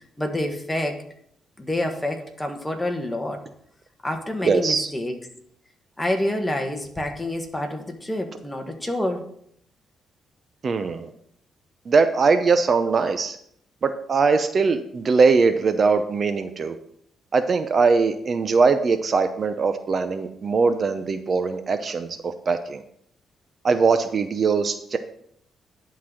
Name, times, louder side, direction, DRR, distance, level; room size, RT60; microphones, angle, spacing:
voice 1, 0.2-1.0 1.6-3.4 4.0-5.1 6.0-9.2, left 1 dB, 10° left, 4 dB, 1.4 m, -27 dB
voice 2, 4.4-4.9 10.6-11.1 11.9-13.4 13.8-16.7 17.3-22.8 23.6-25.0, right 4 dB, 45° right, 9 dB, 0.6 m, -21 dB
11.0 x 4.0 x 6.1 m, 0.70 s
cardioid pair, 100°, 0 cm